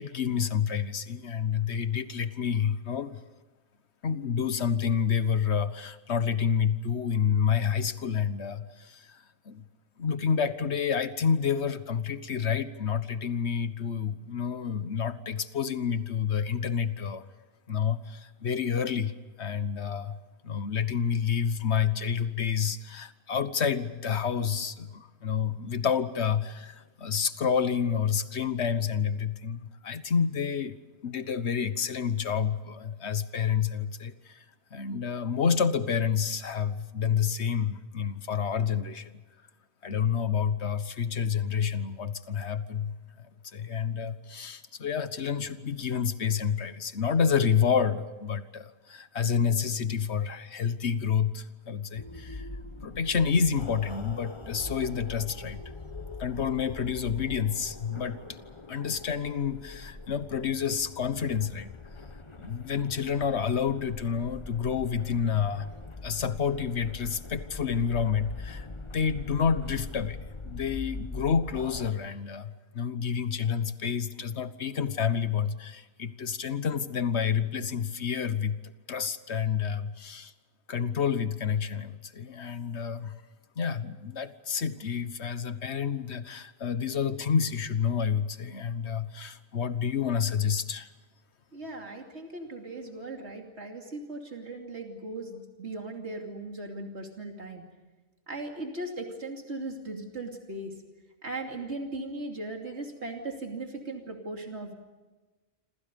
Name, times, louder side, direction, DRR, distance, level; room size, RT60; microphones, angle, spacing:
voice 1, 0.0-3.2 4.0-9.6 10.0-17.3 17.7-19.1 19.4-20.2 20.4-30.8 31.0-34.4 34.7-39.1 39.8-52.5 52.8-55.6 56.2-58.4 58.7-61.7 62.4-65.7 66.0-68.7 68.9-70.2 70.4-80.3 80.7-83.2 83.6-90.9, left 7 dB, 85° left, 12 dB, 1.5 m, -29 dB
sound 1, 51.9-71.9, left 3 dB, 25° left, 1.2 m, -42 dB
voice 2, 91.5-97.6 98.3-100.8 101.2-104.7, right 2 dB, 85° right, 2 dB, 3.0 m, -38 dB
28.0 x 26.5 x 5.3 m, 1.2 s
omnidirectional pair, 1.1 m